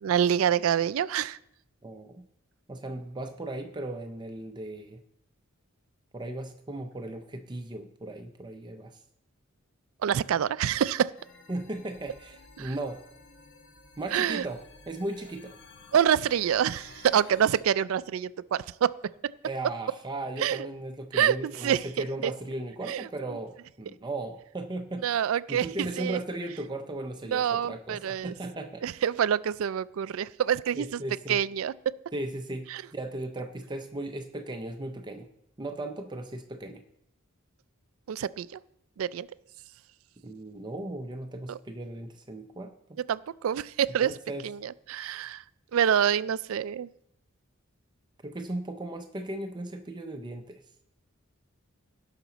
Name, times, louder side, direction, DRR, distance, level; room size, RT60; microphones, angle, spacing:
voice 1, 0.0-1.4 10.0-11.1 12.6-12.7 14.1-14.4 15.9-18.9 20.4-20.7 21.1-22.3 22.9-23.1 25.0-26.2 27.3-28.3 28.8-31.0 31.3-31.9 32.7-32.8 38.1-38.6 39.0-39.3 41.5-41.6 43.1-44.2 44.4-45.4 45.7-46.9, right 9 dB, 75° right, 18 dB, 0.3 m, -26 dB
voice 2, 1.8-2.2 2.7-5.0 6.1-9.0 11.5-13.1 14.0-15.6 19.4-25.2 25.5-28.8 30.7-31.4 32.1-35.3 35.6-36.8 40.2-43.0 44.0-44.5 48.2-50.6, right 2 dB, 20° right, 6 dB, 0.5 m, -37 dB
sound 1, 11.1-17.6, left 3 dB, 60° left, 1.1 m, -53 dB
17.5 x 5.9 x 4.0 m, 0.79 s
head